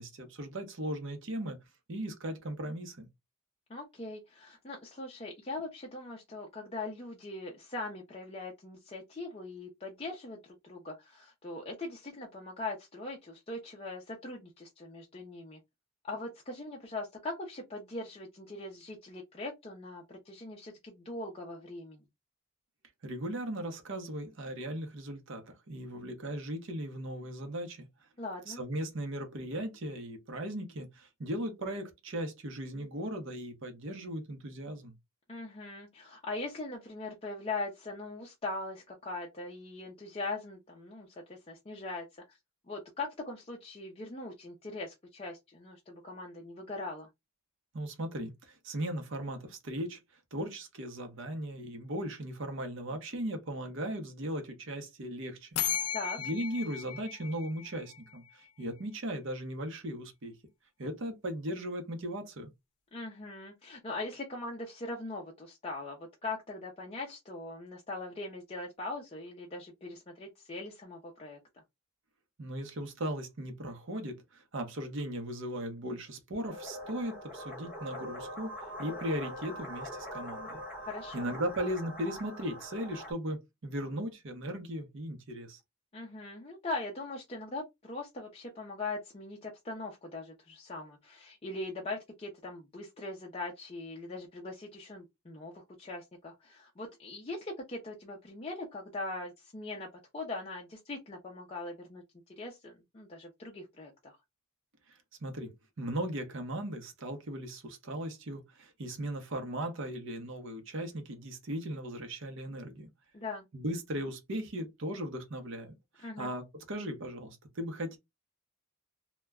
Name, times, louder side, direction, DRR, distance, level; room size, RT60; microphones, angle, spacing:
voice 1, 0.0-1.6 1.9-3.1 23.0-27.9 28.5-34.9 47.7-50.0 50.3-55.6 55.9-60.4 60.8-62.5 72.4-80.6 81.1-85.6 104.9-105.5 105.8-112.9 113.5-118.0, right 1 dB, 55° right, 0.7 m, -37 dB
voice 2, 3.7-15.6 16.0-22.0 28.2-28.6 35.3-42.4 42.7-47.1 55.9-56.2 62.9-71.4 80.9-81.3 85.9-99.9 100.1-102.0 102.4-104.2 113.1-113.5 116.0-116.3, left 2 dB, 25° left, 0.5 m, -41 dB
sound 1, 55.6-58.3, left 9 dB, 90° left, 0.4 m, -36 dB
sound 2, 76.5-83.1, equal, 5° right, 0.8 m, -43 dB
2.2 x 2.1 x 3.4 m
head